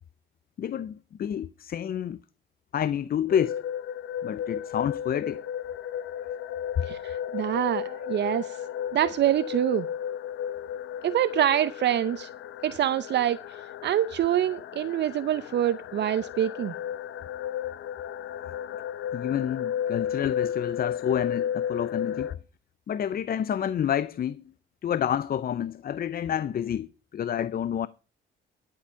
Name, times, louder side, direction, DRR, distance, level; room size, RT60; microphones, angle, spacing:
voice 1, 0.6-2.2 2.7-3.6 4.2-5.4 19.1-22.4 22.9-24.4 24.8-27.9, left 9 dB, 50° left, 0.6 m, -29 dB
sound 1, 3.3-22.3, left 9 dB, 80° left, 0.9 m, -34 dB
voice 2, 6.8-8.6 8.9-9.9 11.0-12.3 12.6-13.4 13.8-16.7, right 11 dB, 60° right, 0.6 m, -25 dB
12.0 x 7.7 x 5.6 m
cardioid pair, 90°, 20 cm